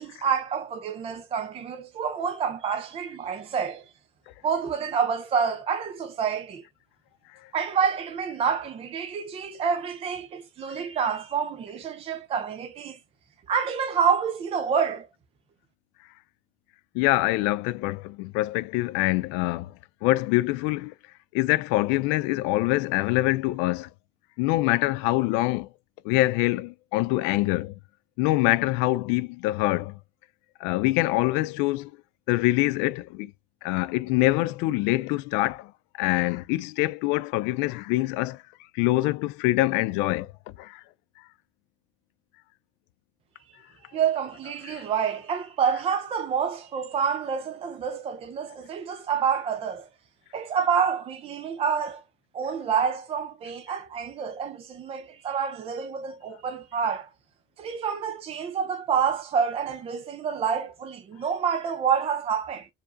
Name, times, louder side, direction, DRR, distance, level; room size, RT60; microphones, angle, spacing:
voice 1, 0.0-3.8 4.4-6.6 7.5-13.0 13.5-15.1 43.9-49.9 50.3-52.0 52.3-57.1 57.6-62.7, right 6 dB, 30° right, 0.6 m, -28 dB
voice 2, 16.9-19.7 20.0-20.9 21.3-23.9 24.4-25.7 26.0-27.8 28.2-30.0 30.6-31.9 32.3-33.3 33.6-35.7 36.0-38.4 38.7-40.3 40.6-40.8 44.7-44.8, left 19 dB, 90° left, 0.4 m, -25 dB
4.7 x 2.8 x 2.5 m
cardioid pair, 145°, 18 cm